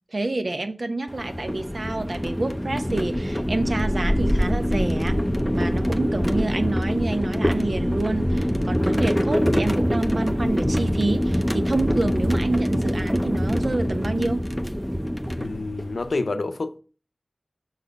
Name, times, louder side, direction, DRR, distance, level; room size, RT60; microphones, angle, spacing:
voice 1, 0.1-5.2 5.5-14.5, right 2 dB, 60° right, 0.7 m, -28 dB
sound 1, 1.1-16.1, equal, 5° left, 0.6 m, -24 dB
voice 2, 15.4-16.8, left 3 dB, 75° left, 0.6 m, -29 dB
6.4 x 4.1 x 5.1 m
wide cardioid pair, 55°, 0 cm